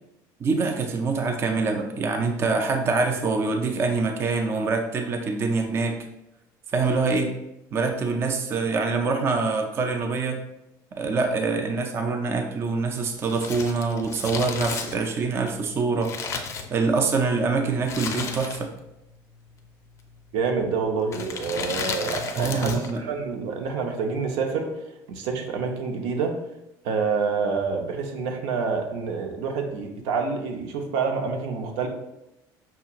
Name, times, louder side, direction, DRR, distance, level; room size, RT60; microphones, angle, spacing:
voice 1, 0.4-6.0 6.7-7.3 7.7-10.4 10.9-16.1 16.7-18.7 22.4-23.0, right 4 dB, 30° right, 4 dB, 0.4 m, -25 dB
Crumpling crinkling, 13.2-17.2 17.8-18.9 19.1-19.2 20.0-20.4 21.1-23.0 23.2-23.3, left 5 dB, 35° left, 0.4 m, -33 dB
voice 2, 20.3-24.7 25.1-26.4 26.8-31.9, right 5 dB, 85° right, 3 dB, 0.7 m, -27 dB
5.6 x 2.8 x 2.4 m, 0.89 s
cardioid pair, 150°, 9 cm